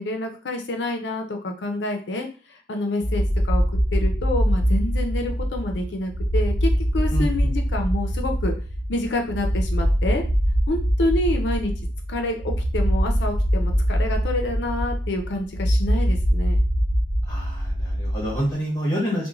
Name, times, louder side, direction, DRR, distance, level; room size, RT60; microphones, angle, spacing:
voice 1, 0.0-2.3 2.7-3.6 3.9-8.5 8.9-10.2 10.7-11.7 12.1-16.6, left 1 dB, 90° left, 4 dB, 0.5 m, -28 dB
sound 1, 3.0-18.5, equal, 55° right, 0.6 m, -23 dB
voice 2, 7.1-7.5 17.3-19.3, equal, 20° left, -4 dB, 1.1 m, -27 dB
3.0 x 2.1 x 2.4 m, 0.37 s
head